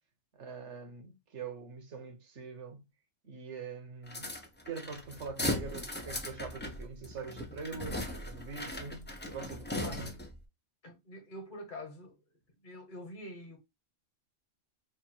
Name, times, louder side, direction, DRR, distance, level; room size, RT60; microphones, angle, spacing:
voice 1, 0.3-2.8 3.2-4.3 4.6-10.1, right 5 dB, 70° right, 1.2 m, -43 dB
sound 1, 4.1-10.4, left 1 dB, 15° left, 0.3 m, -38 dB
voice 2, 10.8-12.1 12.6-13.6, left 1 dB, 40° left, 1.3 m, -45 dB
3.5 x 2.3 x 4.4 m
omnidirectional pair, 1.3 m